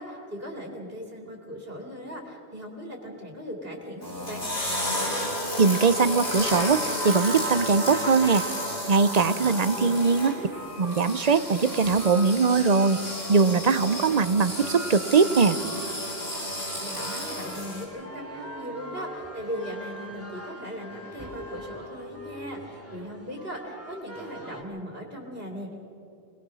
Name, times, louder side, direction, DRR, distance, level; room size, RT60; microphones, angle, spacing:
voice 1, 0.0-4.5 9.7-10.5 16.8-25.8, equal, 65° right, 0 dB, 3.1 m, -38 dB
sound 1, 4.0-17.8, equal, 55° left, 6.9 m, -32 dB
voice 2, 5.6-8.4 8.9-10.3 10.8-13.0 13.3-15.6, right 5 dB, 45° right, 14 dB, 0.7 m, -21 dB
sound 2, 10.5-24.6, right 1 dB, 15° left, 2.2 m, -42 dB
26.5 x 20.0 x 6.3 m, 2.7 s
omnidirectional pair, 1.0 m